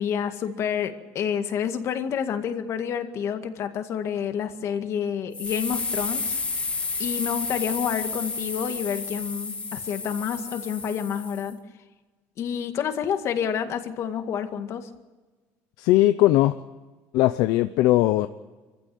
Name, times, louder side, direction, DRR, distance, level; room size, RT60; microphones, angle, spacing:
voice 1, 0.0-6.3 7.0-11.6 12.4-14.9, left 8 dB, 50° left, 7 dB, 2.0 m, -29 dB
sound 1, 5.3-11.5, left 4 dB, 20° left, 1.8 m, -31 dB
voice 2, 15.8-16.5 17.1-18.3, left 15 dB, 75° left, 11 dB, 0.8 m, -19 dB
25.5 x 16.0 x 9.5 m, 1.3 s
cardioid pair, 135°, 6 cm